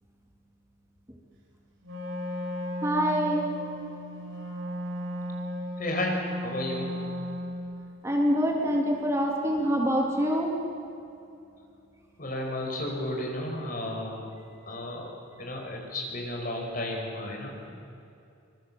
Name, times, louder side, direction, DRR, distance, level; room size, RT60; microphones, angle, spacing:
Wind instrument woodwind instrument, 1.8-7.8, equal, 65° right, 6.1 m, -35 dB
voice 1, 2.8-3.4 8.0-10.5, equal, 15° right, -1 dB, 2.7 m, -25 dB
voice 2, 5.8-6.9 12.2-14.3 14.7-15.1 15.4-17.7, left 1 dB, 45° left, 1 dB, 5.1 m, -33 dB
25.0 x 23.5 x 7.6 m, 2.6 s
head